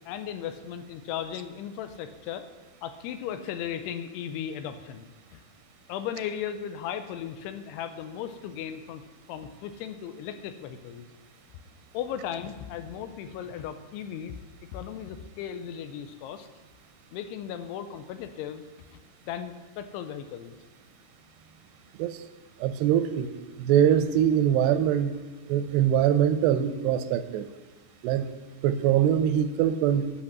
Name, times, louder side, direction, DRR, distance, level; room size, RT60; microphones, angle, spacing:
voice 1, 0.1-2.5 2.8-5.4 5.9-9.0 9.3-11.1 11.9-14.3 14.7-16.5 17.1-18.6 18.9-20.6, left 9 dB, 90° left, 9 dB, 2.8 m, -36 dB
voice 2, 22.6-23.3 23.6-25.2 25.5-27.5 28.0-28.3 28.6-30.1, right 10 dB, 85° right, 11 dB, 2.7 m, -23 dB
11.5 x 6.6 x 6.0 m, 1.2 s
omnidirectional pair, 4.7 m